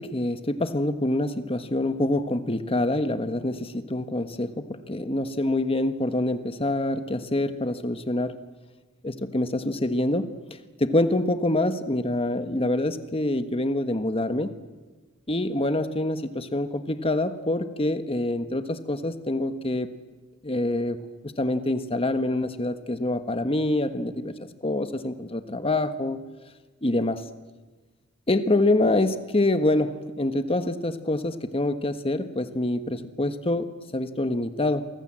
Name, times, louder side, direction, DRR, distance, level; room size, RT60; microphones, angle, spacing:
voice 1, 0.0-8.3 9.0-10.3 10.8-14.5 15.3-19.9 20.4-21.0 21.4-24.3 24.6-26.2 26.8-27.2 28.3-34.9, left 1 dB, 25° left, 10 dB, 1.4 m, -26 dB
29.5 x 24.5 x 7.6 m, 1.3 s
head